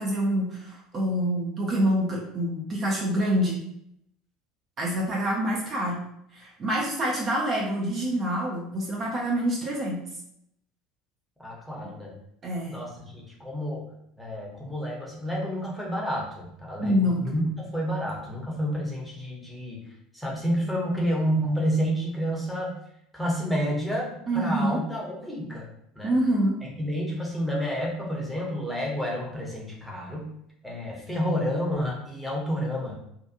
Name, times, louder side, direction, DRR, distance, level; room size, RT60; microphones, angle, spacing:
voice 1, 0.0-3.6 4.8-6.0 6.3-10.0 12.4-12.8 16.8-17.2 24.3-24.8 26.0-26.6, equal, 35° right, -3 dB, 0.6 m, -26 dB
voice 2, 11.4-12.1 12.7-13.8 14.2-17.4 17.7-19.8 20.1-22.8 23.1-25.7 26.0-26.1 26.8-30.3 30.6-32.9, equal, ahead, -3 dB, 0.9 m, -29 dB
2.7 x 2.5 x 2.4 m, 0.75 s
figure-of-eight pair, 70°, 0 cm